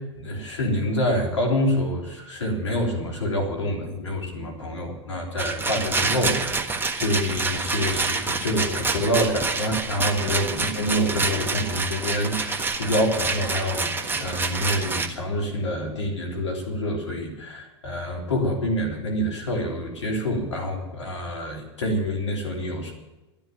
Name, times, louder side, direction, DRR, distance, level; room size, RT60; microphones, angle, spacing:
voice 1, 0.2-22.9, equal, 80° left, 1 dB, 3.4 m, -27 dB
Rattle, 5.4-15.1, right 3 dB, 15° right, 1.4 m, -27 dB
12.5 x 10.5 x 8.8 m, 1.1 s
hypercardioid pair, 95°, 15 cm